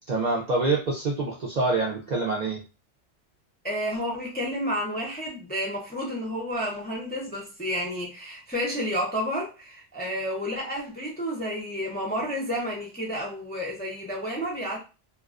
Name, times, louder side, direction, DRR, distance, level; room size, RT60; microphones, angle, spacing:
voice 1, 0.1-2.6, right 3 dB, 60° right, -3 dB, 0.5 m, -26 dB
voice 2, 3.6-14.8, equal, 15° left, -2 dB, 0.3 m, -30 dB
2.3 x 2.3 x 2.4 m, 0.31 s
omnidirectional pair, 1.2 m